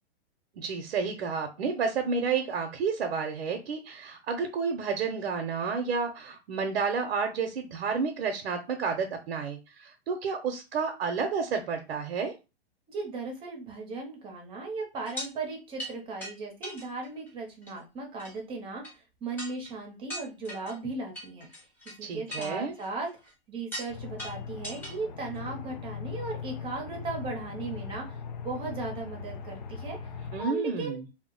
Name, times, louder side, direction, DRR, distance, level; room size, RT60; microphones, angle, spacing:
voice 1, 0.6-12.3 22.0-22.8 30.3-31.0, right 5 dB, 75° right, 5 dB, 0.7 m, -30 dB
voice 2, 12.9-21.7 22.0-30.1 30.4-31.0, right 3 dB, 15° right, 1 dB, 0.7 m, -37 dB
sound 1, 15.1-15.3 15.8-15.9 16.2-16.3 16.6-17.3 17.6-17.8 18.2-18.3 18.8-18.9 19.4-19.7 20.1-20.7 21.1-22.0 22.3-23.3 23.7-23.9 24.2-24.9 25.3-25.4, equal, 5° left, 1.0 m, -39 dB
Aircraft, 23.9-30.4, left 6 dB, 45° left, 0.4 m, -39 dB
2.3 x 2.1 x 3.7 m, 0.28 s
hypercardioid pair, 145°, 32 cm